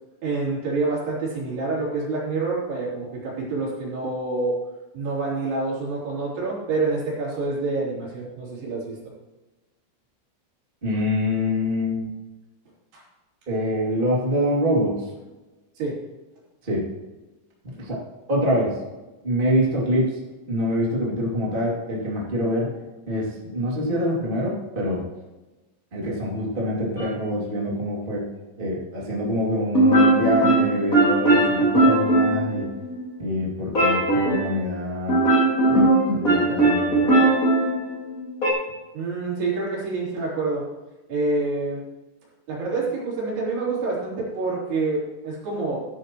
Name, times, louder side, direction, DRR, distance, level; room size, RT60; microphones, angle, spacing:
voice 1, 0.2-4.6 4.9-9.0 12.9-13.0 15.8-16.0 38.9-40.7 41.1-41.8 42.5-45.9, right 3 dB, 55° right, -5 dB, 5.2 m, -27 dB
voice 2, 10.8-12.1 13.5-15.1 16.6-16.9 17.6-18.0 18.3-18.8 19.2-20.2 20.5-22.7 23.1-25.0 25.9-28.2 28.6-32.7 33.2-35.3 35.7-37.1, equal, 25° right, -4 dB, 1.0 m, -25 dB
sound 1, 27.0-27.1 29.7-33.0 33.7-34.6 35.1-38.5, right 2 dB, 45° left, 1.1 m, -19 dB
15.0 x 10.0 x 3.1 m, 1.1 s
omnidirectional pair, 5.9 m